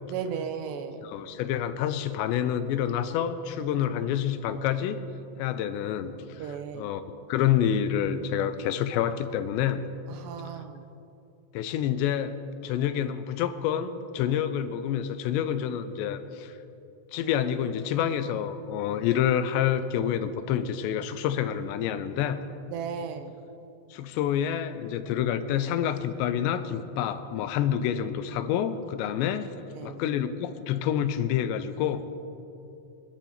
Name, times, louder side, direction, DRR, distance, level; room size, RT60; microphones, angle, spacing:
voice 1, 0.1-1.0 6.4-6.9 10.2-10.8 22.7-23.3 29.7-30.0, right 7 dB, 80° right, 7 dB, 3.0 m, -35 dB
voice 2, 1.0-5.0 5.4-7.0 7.3-9.8 11.5-12.3 12.6-16.5 17.1-22.4 23.9-29.5 29.8-32.0, left 9 dB, 90° left, 11 dB, 3.0 m, -28 dB
24.5 x 11.0 x 4.4 m, 2.7 s
omnidirectional pair, 4.9 m